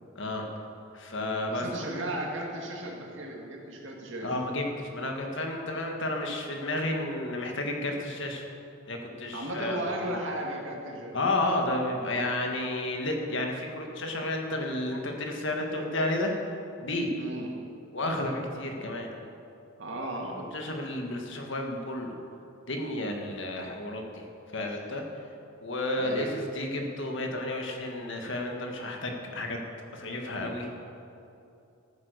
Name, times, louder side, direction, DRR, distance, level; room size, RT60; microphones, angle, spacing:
voice 1, 0.2-0.5 0.9-1.6 4.2-8.5 8.9-10.1 11.1-16.3 16.8-17.1 17.9-19.1 20.4-22.1 22.7-24.2 24.5-25.0 25.6-29.6 29.9-30.8, left 1 dB, 60° left, 2 dB, 1.6 m, -31 dB
voice 2, 1.5-4.3 9.3-11.2 17.2-17.5 19.8-20.4 26.0-26.3, right 1 dB, 60° right, 0 dB, 2.1 m, -35 dB
13.5 x 9.5 x 6.7 m, 2.8 s
head